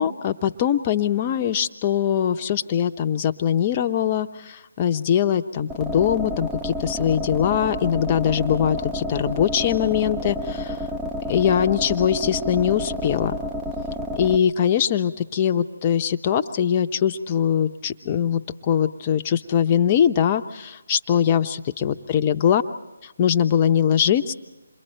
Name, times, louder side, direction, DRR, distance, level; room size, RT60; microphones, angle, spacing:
voice 1, 0.0-10.8 11.3-13.3 14.2-22.6 23.2-24.3, left 9 dB, 25° left, 7 dB, 0.8 m, -22 dB
sound 1, 5.7-14.4, left 1 dB, 10° right, 0.7 m, -30 dB
28.0 x 22.5 x 4.5 m, 1.1 s
figure-of-eight pair, 150°, 0 cm